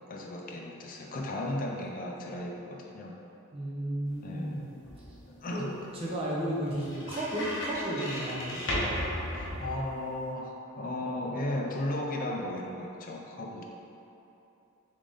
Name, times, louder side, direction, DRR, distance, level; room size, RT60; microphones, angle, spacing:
voice 1, 0.1-3.1 4.2-4.6 5.3-5.8 9.4-13.6, left 1 dB, 40° left, 0 dB, 0.4 m, -35 dB
voice 2, 3.5-4.7 5.5-5.7 6.0-8.6, right 1 dB, 25° right, -6 dB, 0.7 m, -33 dB
sound 1, 4.1-10.3, equal, 55° left, 0.9 m, -37 dB
3.6 x 3.6 x 3.8 m, 2.9 s
head